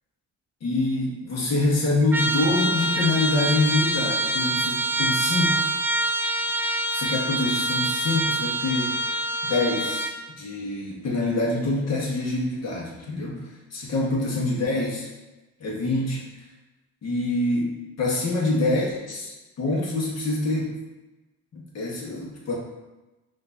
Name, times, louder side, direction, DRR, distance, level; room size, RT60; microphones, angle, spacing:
voice 1, 0.6-5.6 6.6-9.0 9.4-15.1 15.6-16.2 17.0-20.8 21.5-22.5, left 2 dB, 60° left, -4 dB, 1.6 m, -26 dB
Trumpet, 2.1-10.2, right 1 dB, 5° right, 0.3 m, -25 dB
6.0 x 3.1 x 2.8 m, 1.1 s
cardioid pair, 90°, 30 cm